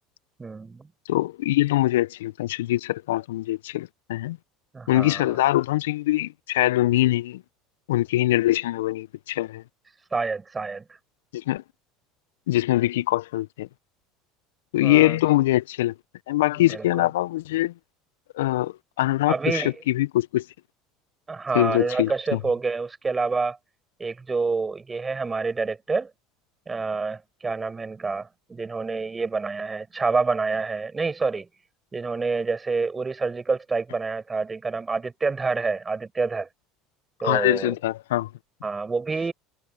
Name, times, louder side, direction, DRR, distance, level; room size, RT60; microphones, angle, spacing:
voice 1, 0.4-0.9 4.7-5.3 10.1-10.8 14.8-15.2 16.6-17.1 19.3-19.8 21.3-23.6 24.0-26.1 26.7-31.5 31.9-36.5 37.2-37.7 38.6-39.3, right 4 dB, 20° right, 6.5 m, -27 dB
voice 2, 1.1-4.4 4.9-7.4 7.9-9.6 11.3-11.6 12.5-13.7 14.7-15.9 16.3-17.7 18.3-20.4 21.5-22.4 37.2-38.3, left 16 dB, 70° left, 1.1 m, -23 dB
hypercardioid pair, 70°, 0 cm